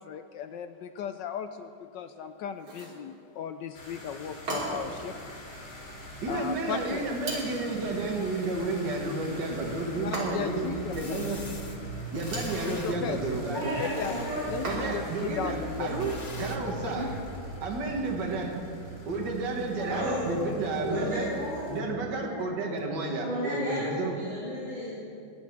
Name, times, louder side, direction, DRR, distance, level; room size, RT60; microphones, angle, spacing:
voice 1, 0.0-5.2 6.3-7.0 10.0-11.2 12.7-13.2 13.8-15.1 15.3-16.1 17.8-18.0, left 8 dB, 75° left, 9 dB, 1.1 m, -36 dB
sound 1, 2.6-3.0 4.5-5.0 7.2-7.7 10.1-10.7 12.1-12.6 14.6-15.2, right 1 dB, 85° right, 4.1 m, -35 dB
sound 2, 3.7-21.8, right 1 dB, 55° left, 3.4 m, -42 dB
voice 2, 6.2-11.4 12.1-13.8 14.7-17.1 17.6-18.6 19.1-21.3 21.7-24.1, right 3 dB, 55° right, 0 dB, 2.2 m, -31 dB
sound 3, 9.8-9.9 10.9-11.8 12.1-13.0 13.6-14.7 16.0-16.6, left 3 dB, 40° left, 0.6 m, -43 dB
voice 3, 13.5-14.7 16.8-17.0 19.8-20.4 20.7-21.8 22.2-22.3 23.2-24.9, equal, 20° right, -11 dB, 4.7 m, -33 dB
21.0 x 10.5 x 4.6 m, 2.6 s
omnidirectional pair, 2.3 m